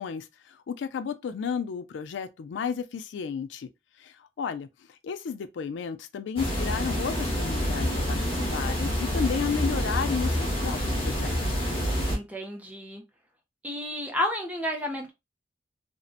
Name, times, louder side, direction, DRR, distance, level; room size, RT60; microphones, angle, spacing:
voice 1, 0.0-3.7 4.0-11.6, left 6 dB, 85° left, 0.3 m, -33 dB
sound 1, 6.4-12.2, equal, 30° left, 0.7 m, -27 dB
voice 2, 12.1-13.0 13.6-15.1, left 1 dB, 10° right, 0.5 m, -31 dB
2.5 x 2.1 x 2.3 m
head